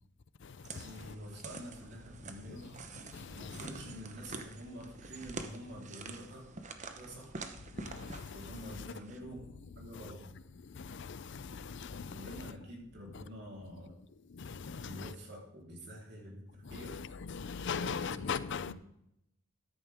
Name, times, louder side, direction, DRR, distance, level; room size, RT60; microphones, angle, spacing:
sound 1, 0.6-9.2, right 3 dB, 35° right, 1.0 m, -47 dB
voice 1, 0.7-2.8 3.3-6.4 6.9-7.3 8.3-9.5 9.8-10.3 12.1-14.0 14.8-17.0 17.6-18.7, equal, 55° right, 3.8 m, -48 dB
voice 2, 11.7-12.2 14.5-15.1 16.8-18.7, left 6 dB, 60° left, 0.5 m, -38 dB
13.5 x 10.5 x 3.6 m
head